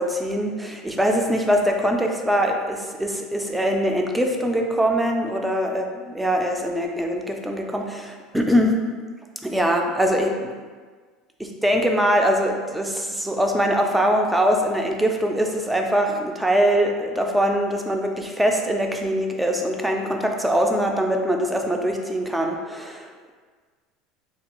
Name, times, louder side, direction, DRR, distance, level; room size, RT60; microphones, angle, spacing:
voice 1, 0.0-8.8 9.4-10.5 11.4-23.3, equal, 5° right, 2 dB, 0.3 m, -22 dB
3.2 x 2.3 x 2.9 m, 1.5 s
supercardioid pair, 135°, 0 cm